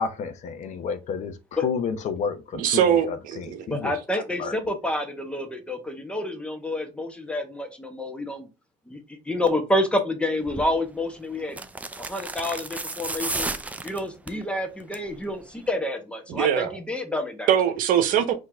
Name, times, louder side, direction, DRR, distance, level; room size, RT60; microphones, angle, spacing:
voice 1, 0.0-3.9 4.4-4.5, left 6 dB, 50° left, 0.9 m, -30 dB
voice 2, 2.5-3.7 16.3-16.8 17.5-18.3, right 9 dB, 65° right, 1.0 m, -22 dB
voice 3, 3.7-8.5 8.9-9.0 9.2-11.6 12.0-13.5 13.8-17.5, left 1 dB, 5° left, 1.2 m, -28 dB
sound 1, 10.5-10.7 11.5-14.4 14.8-15.1 15.4-15.5, right 2 dB, 10° right, 0.5 m, -32 dB
4.6 x 3.0 x 3.5 m
cardioid pair, 105°, 15 cm